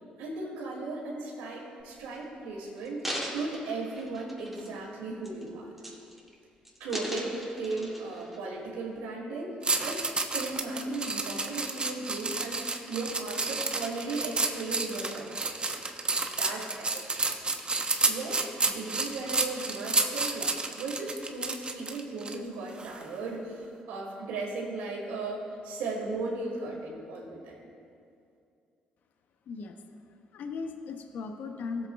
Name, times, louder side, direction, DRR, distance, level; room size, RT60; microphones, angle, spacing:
voice 1, 0.2-3.0 3.3-5.7 6.8-9.5 9.8-10.1 10.3-15.8 16.3-17.4 18.1-27.7, right 3 dB, 80° right, -2 dB, 2.4 m, -36 dB
sound 1, 1.8-2.2 2.8-4.9 5.2-5.5 5.8-6.3 6.6-8.4 8.9-9.0, equal, 5° right, 2.6 m, -39 dB
sound 2, 9.6-22.3 22.8-23.0, right 3 dB, 30° right, 1.0 m, -30 dB
voice 2, 29.5-29.8 30.3-31.9, left 4 dB, 65° left, 5 dB, 0.8 m, -37 dB
17.5 x 7.9 x 2.4 m, 2.5 s
hypercardioid pair, 55°, 3 cm